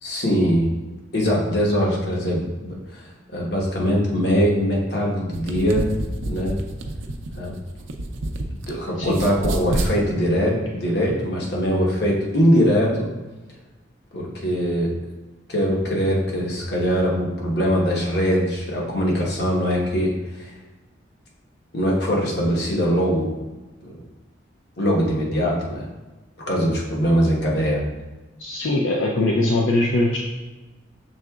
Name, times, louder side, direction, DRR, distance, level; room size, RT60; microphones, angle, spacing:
voice 1, 0.0-0.7 1.1-5.9 6.2-6.6 7.4-7.5 8.7-13.1 14.1-14.9 15.5-20.5 21.7-23.3 23.8-24.0 24.8-25.8 26.5-27.8, equal, 60° left, -3 dB, 1.1 m, -22 dB
sound 1, 5.2-8.7 9.0-9.9, right 1 dB, 80° right, 0.5 m, -28 dB
voice 2, 28.4-30.2, left 2 dB, 85° left, -1 dB, 0.5 m, -21 dB
6.2 x 3.7 x 2.3 m, 1.2 s
head